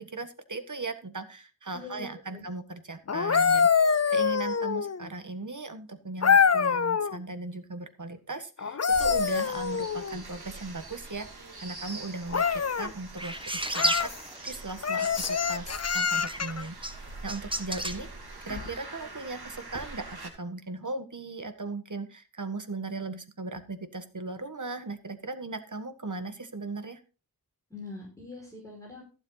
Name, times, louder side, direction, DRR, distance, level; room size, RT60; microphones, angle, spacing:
voice 1, 0.0-16.8 17.2-18.1 18.4-27.0, right 3 dB, 50° right, 9 dB, 1.6 m, -38 dB
voice 2, 1.7-2.5 27.7-29.0, left 3 dB, 10° left, -3 dB, 5.6 m, -43 dB
sound 1, 3.1-5.1 6.2-7.2 8.6-10.2 12.3-12.9 13.7-14.2 14.8-16.6 18.5-18.7, left 6 dB, 45° left, 0.6 m, -25 dB
sound 2, 8.9-20.3, right 2 dB, 75° right, 2.8 m, -44 dB
sound 3, 12.1-12.5 13.2-14.7 15.0-15.5 15.9-18.0, right 1 dB, 15° right, 1.3 m, -33 dB
15.0 x 7.2 x 4.0 m, 0.34 s
wide cardioid pair, 55°, 38 cm